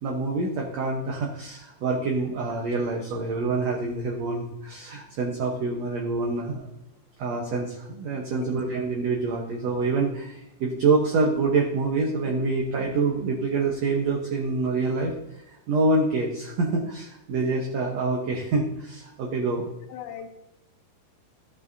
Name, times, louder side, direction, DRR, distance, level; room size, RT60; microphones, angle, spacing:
voice 1, 0.0-6.7 7.2-19.7, right 3 dB, 65° right, -1 dB, 1.8 m, -26 dB
voice 2, 19.9-20.3, left 9 dB, 90° left, 6 dB, 2.8 m, -38 dB
13.5 x 7.5 x 2.7 m, 0.89 s
omnidirectional pair, 4.3 m